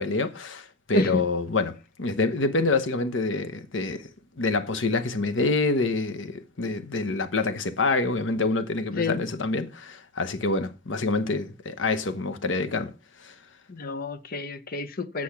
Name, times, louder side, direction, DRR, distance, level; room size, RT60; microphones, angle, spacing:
voice 1, 0.0-4.1 4.4-12.9 13.2-13.4, left 3 dB, 80° left, 1.0 m, -27 dB
voice 2, 13.7-15.2, left 2 dB, 50° left, 0.8 m, -29 dB
8.5 x 6.2 x 5.8 m
head